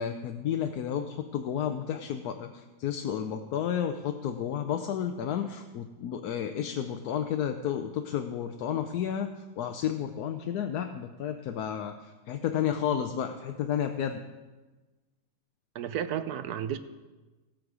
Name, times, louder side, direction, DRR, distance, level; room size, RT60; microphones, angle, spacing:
voice 1, 0.0-9.3 9.6-14.2, left 9 dB, 70° left, 6 dB, 1.1 m, -31 dB
voice 2, 15.7-16.8, right 9 dB, 75° right, 11 dB, 1.1 m, -32 dB
18.5 x 6.5 x 4.8 m, 1.2 s
omnidirectional pair, 1.8 m